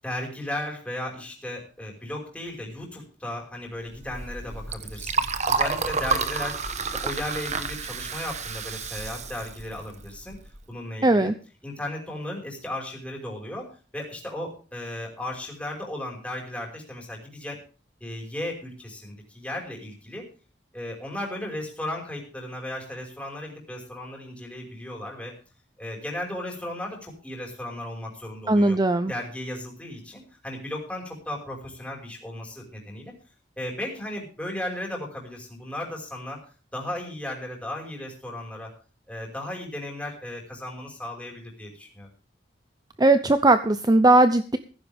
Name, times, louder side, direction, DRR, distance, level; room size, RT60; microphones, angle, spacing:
voice 1, 0.0-10.4 10.7-11.3 11.6-17.6 18.0-20.3 20.7-25.4 25.8-28.8 29.1-33.1 33.6-36.4 36.7-38.7 39.1-42.1, left 1 dB, 5° left, 0 dB, 5.4 m, -35 dB
Liquid, 3.9-10.6, right 4 dB, 40° right, 1.4 m, -30 dB
voice 2, 11.0-11.3 28.5-29.1 43.0-44.6, right 2 dB, 20° right, 11 dB, 0.7 m, -18 dB
15.5 x 15.5 x 3.6 m, 0.37 s
head